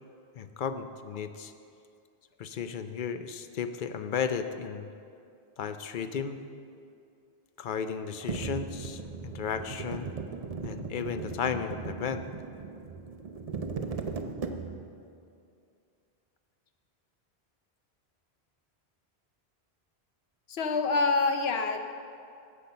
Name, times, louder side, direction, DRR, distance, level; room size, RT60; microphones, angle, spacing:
voice 1, 0.4-1.5 2.4-4.9 5.6-6.4 7.6-10.1 10.6-12.2, left 7 dB, 55° left, 9 dB, 0.7 m, -34 dB
sound 1, 8.3-15.0, right 4 dB, 40° right, 0.6 m, -37 dB
voice 2, 20.5-21.8, left 3 dB, 75° left, 7 dB, 1.0 m, -26 dB
10.5 x 7.5 x 6.7 m, 2.4 s
omnidirectional pair, 1.1 m